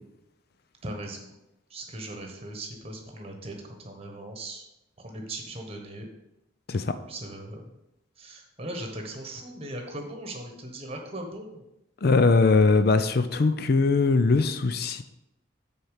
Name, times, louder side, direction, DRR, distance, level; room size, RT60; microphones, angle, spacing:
voice 1, 0.8-1.3 1.7-4.6 5.0-6.1 7.1-7.6 8.2-11.7, right 1 dB, 30° right, 3 dB, 1.2 m, -39 dB
voice 2, 12.0-15.0, left 3 dB, 50° left, 11 dB, 0.4 m, -21 dB
6.5 x 4.4 x 6.5 m, 0.89 s
head